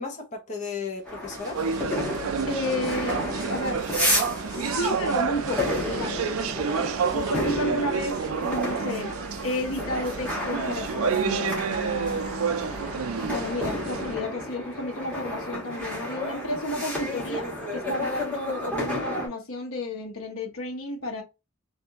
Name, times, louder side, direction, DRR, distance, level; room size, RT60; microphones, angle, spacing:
voice 1, 0.0-1.6 6.6-7.0 18.0-18.1, left 4 dB, 35° left, 0.9 m, -35 dB
sound 1, 1.0-19.3, left 1 dB, 5° left, 1.3 m, -32 dB
sound 2, 1.0-8.7, right 3 dB, 15° right, 0.7 m, -46 dB
sound 3, 1.5-14.2, right 6 dB, 75° right, 0.4 m, -30 dB
voice 2, 2.5-3.9 4.4-6.3 7.1-9.1 9.4-12.6 13.3-21.2, left 1 dB, 75° left, 1.1 m, -32 dB
3.4 x 2.5 x 2.8 m
head